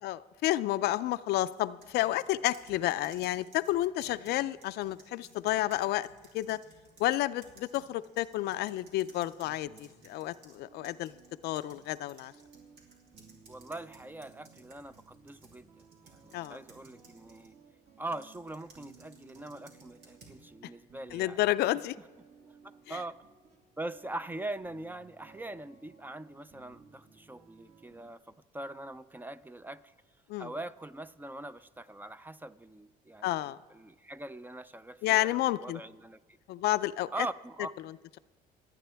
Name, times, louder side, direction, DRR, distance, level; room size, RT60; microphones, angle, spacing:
voice 1, 0.0-6.1 6.3-6.6 7.0-11.1 11.4-12.3 16.3-16.6 21.1-22.0 22.9-23.0 30.3-30.5 33.2-33.6 35.0-35.8 36.5-37.3, left 15 dB, 75° left, 0.4 m, -30 dB
sound 1, 1.4-10.6 10.8-17.5 18.1-20.4, right 3 dB, 80° right, 2.9 m, -58 dB
sound 2, 9.1-28.1, right 5 dB, 40° right, 1.4 m, -60 dB
voice 2, 13.5-15.7 16.0-17.5 18.0-21.4 21.7-21.8 22.2-22.6 22.9-23.2 23.8-29.9 30.4-33.4 33.7-36.4 37.1-37.7, right 2 dB, 10° right, 0.4 m, -42 dB
27.0 x 9.1 x 3.4 m
cardioid pair, 110°, 17 cm